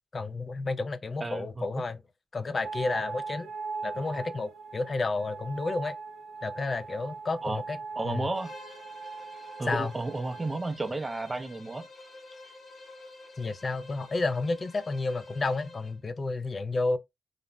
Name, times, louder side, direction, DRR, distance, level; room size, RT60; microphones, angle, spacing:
voice 1, 0.1-2.0 2.3-3.5 3.8-5.9 6.4-7.8 8.0-8.3 9.7-9.9 13.4-17.0, left 3 dB, 45° left, 0.4 m, -31 dB
voice 2, 1.2-1.8 7.4-7.6 8.0-8.5 9.6-11.9, right 2 dB, 25° right, 0.5 m, -33 dB
sound 1, 2.6-10.6, right 4 dB, 80° right, 0.5 m, -40 dB
Bowed string instrument, 8.3-16.0, left 2 dB, 60° left, 1.0 m, -49 dB
2.5 x 2.0 x 3.1 m
cardioid pair, 65°, 0 cm